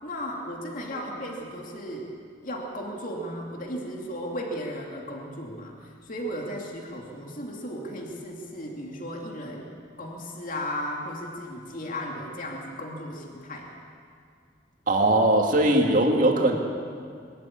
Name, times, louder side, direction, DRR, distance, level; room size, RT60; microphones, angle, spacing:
voice 1, 0.0-2.1 2.4-9.7 10.0-13.7, equal, 40° left, -1 dB, 2.6 m, -35 dB
voice 2, 14.9-16.6, right 1 dB, 40° right, 1 dB, 2.4 m, -20 dB
22.5 x 13.5 x 8.7 m, 2.2 s
head